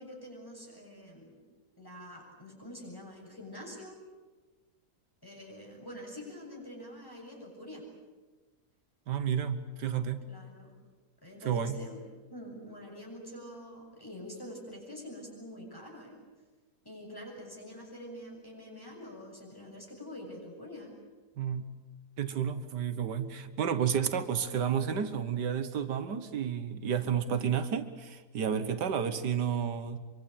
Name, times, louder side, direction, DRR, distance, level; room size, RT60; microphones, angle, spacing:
voice 1, 0.0-1.4 1.8-3.9 5.2-7.8 10.3-10.7 11.2-12.0 12.3-16.2 16.8-20.9 28.5-28.8, left 1 dB, 10° left, -1 dB, 7.9 m, -46 dB
voice 2, 9.1-10.3 11.5-11.8 21.4-21.7 22.2-30.0, right 8 dB, 85° right, 11 dB, 1.8 m, -31 dB
25.5 x 24.5 x 8.9 m, 1.3 s
omnidirectional pair, 1.8 m